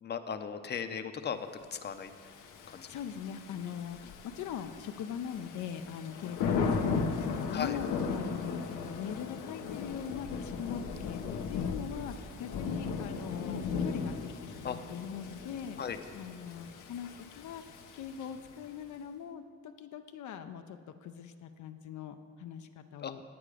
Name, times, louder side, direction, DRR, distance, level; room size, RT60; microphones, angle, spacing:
voice 1, 0.0-2.1 2.7-2.9 7.5-7.8 14.6-14.8 15.8-16.0 23.0-23.1, left 7 dB, 35° left, 8 dB, 0.6 m, -37 dB
Thunder / Rain, 2.1-18.7, left 5 dB, 90° left, 0.9 m, -37 dB
voice 2, 2.9-15.8 16.1-17.1 17.4-17.6 17.9-23.2, left 8 dB, 75° left, 7 dB, 0.6 m, -41 dB
8.8 x 8.6 x 4.9 m, 2.1 s
cardioid pair, 90°, 30 cm